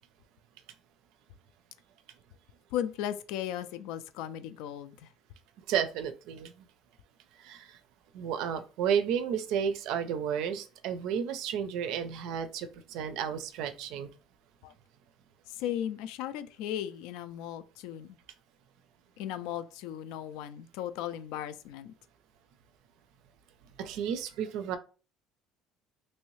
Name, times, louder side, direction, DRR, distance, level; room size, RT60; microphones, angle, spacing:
voice 1, 2.7-5.1 14.6-14.7 15.5-18.2 19.2-21.9, left 11 dB, 85° left, 0.3 m, -36 dB
voice 2, 5.7-6.5 7.4-7.7 8.1-14.1 23.8-24.8, right 8 dB, 65° right, 0.4 m, -32 dB
3.1 x 2.7 x 3.1 m
cardioid pair, 170°, 0 cm